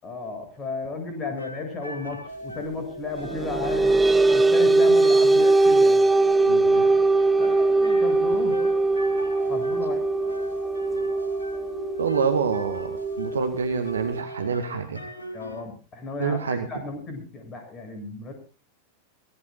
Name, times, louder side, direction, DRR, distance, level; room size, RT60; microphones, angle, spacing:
voice 1, 0.0-3.9 4.3-6.0 7.4-8.7 9.5-10.0 15.3-18.3, left 3 dB, 25° left, 6 dB, 7.8 m, -34 dB
sound 1, 1.4-15.6, equal, 75° left, 3.9 m, -39 dB
sound 2, 3.2-14.2, right 2 dB, 10° right, 1.2 m, -21 dB
voice 2, 6.5-6.9 12.0-15.0 16.2-16.7, right 6 dB, 70° right, 7 dB, 1.9 m, -27 dB
24.5 x 18.5 x 2.5 m, 0.36 s
figure-of-eight pair, 90°, 0 cm